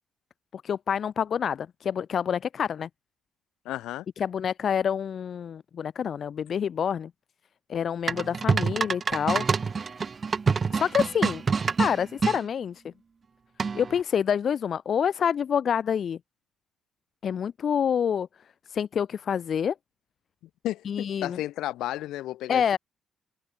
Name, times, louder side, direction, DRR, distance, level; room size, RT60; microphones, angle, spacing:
voice 1, 0.5-2.9 4.2-7.1 7.7-9.5 10.7-11.4 11.8-12.8 13.7-16.2 17.2-18.3 18.7-19.7 20.8-21.4 22.5-22.8, left 8 dB, 55° left, 0.6 m, -27 dB
voice 2, 3.6-4.1 20.6-22.8, left 15 dB, 85° left, 2.6 m, -33 dB
sound 1, 8.1-12.4 13.6-14.0, right 5 dB, 40° right, 1.0 m, -26 dB
cardioid pair, 90°, 0 cm